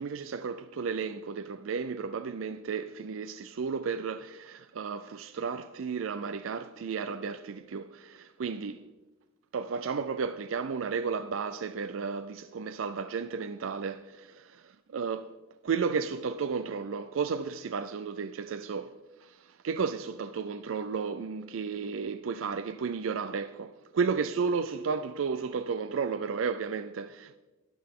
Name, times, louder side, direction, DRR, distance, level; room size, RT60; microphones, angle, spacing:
voice 1, 0.0-8.8 9.5-15.3 15.6-18.9 19.2-27.4, right 5 dB, 85° right, 0.4 m, -33 dB
12.5 x 11.5 x 3.7 m
head